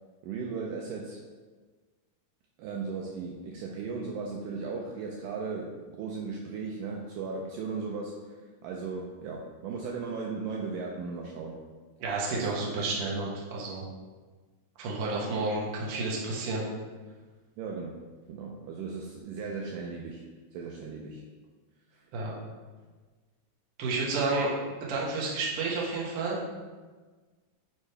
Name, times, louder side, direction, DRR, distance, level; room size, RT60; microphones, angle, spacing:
voice 1, 0.2-1.3 2.6-11.6 12.3-12.6 17.6-17.9 18.3-21.2 21.9-22.1, right 4 dB, 90° right, -1 dB, 1.8 m, -37 dB
voice 2, 12.0-13.8 14.8-16.6 22.1-22.3 23.8-24.5 24.8-26.4, right 3 dB, 70° right, -4 dB, 1.4 m, -30 dB
7.2 x 4.7 x 3.3 m, 1.4 s
omnidirectional pair, 4.3 m